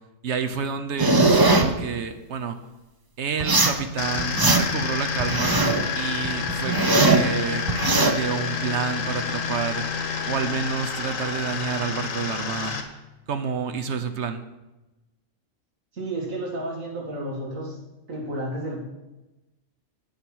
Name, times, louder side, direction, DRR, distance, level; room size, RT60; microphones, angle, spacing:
voice 1, 0.2-2.6 3.2-5.7 5.9-9.9 10.3-12.8 13.3-14.4, right 6 dB, 60° right, 8 dB, 1.1 m, -29 dB
sound 1, 1.0-1.7 3.4-3.8 4.2-4.8 5.2-5.8 6.2-7.3 7.7-8.1, right 2 dB, 25° right, 0.6 m, -19 dB
sound 2, 4.0-12.8, left 5 dB, 75° left, 1.5 m, -29 dB
voice 2, 15.9-17.8 18.1-18.8, right 1 dB, 90° right, -1 dB, 2.7 m, -31 dB
8.7 x 8.0 x 6.2 m, 1.0 s
omnidirectional pair, 1.4 m